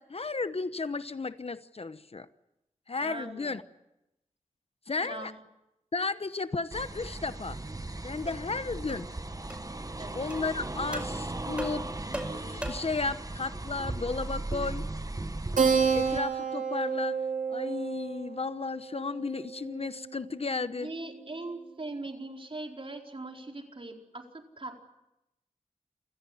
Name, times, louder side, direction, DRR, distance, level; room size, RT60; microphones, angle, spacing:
voice 1, 0.0-2.3 2.9-3.6 4.9-5.3 5.9-7.6 8.0-9.1 10.1-11.9 12.2-14.8 15.9-17.2 17.5-20.9, left 4 dB, 50° left, 13 dB, 0.9 m, -33 dB
voice 2, 3.0-3.6 5.0-5.4 10.0-10.2 20.8-24.8, right 2 dB, 45° right, 2 dB, 4.4 m, -40 dB
sound 1, 6.7-16.2, right 2 dB, 30° right, 1.5 m, -37 dB
sound 2, 8.3-8.4 8.9-9.1 9.5-9.6 10.3-10.4 10.9-11.1 11.6-13.0, right 1 dB, 10° right, 5.0 m, -39 dB
Keyboard (musical), 15.6-20.5, right 6 dB, 90° right, 3.7 m, -30 dB
28.0 x 16.5 x 9.9 m, 0.91 s
cardioid pair, 55°, 13 cm